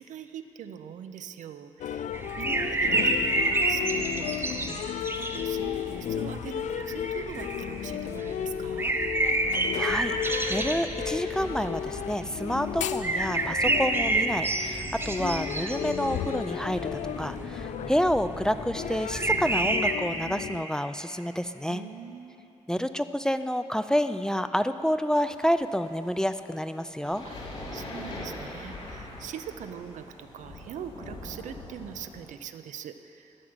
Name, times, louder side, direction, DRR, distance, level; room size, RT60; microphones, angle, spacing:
voice 1, 0.0-9.0 21.7-22.6 27.2-27.4 27.7-33.4, right 8 dB, 90° right, 9 dB, 0.6 m, -42 dB
sound 1, 1.8-20.6, left 9 dB, 80° left, 0.4 m, -34 dB
sound 2, 2.1-19.9, right 2 dB, 20° right, 0.7 m, -30 dB
voice 2, 9.7-10.1 10.5-21.8 22.7-27.2, equal, 5° left, 10 dB, 0.3 m, -29 dB
sound 3, 25.1-32.2, left 1 dB, 50° left, 2.7 m, -42 dB
13.0 x 6.0 x 8.8 m, 3.0 s
cardioid pair, 110°, 12 cm